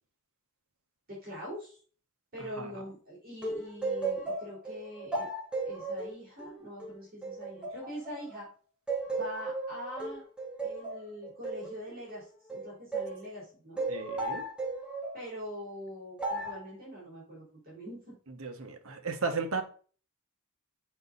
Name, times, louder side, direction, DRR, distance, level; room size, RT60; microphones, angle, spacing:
voice 1, 1.1-1.8 2.3-5.3 5.6-8.5 9.1-10.2 10.6-13.8 15.1-18.1, equal, 45° right, 4.4 m, -43 dB
sound 1, 3.4-8.4 8.9-13.2 13.8-15.2 16.2-16.7, right 3 dB, 5° right, 1.9 m, -35 dB
voice 2, 13.9-14.4 18.4-19.6, right 4 dB, 80° right, 1.3 m, -34 dB
7.9 x 5.4 x 4.0 m
head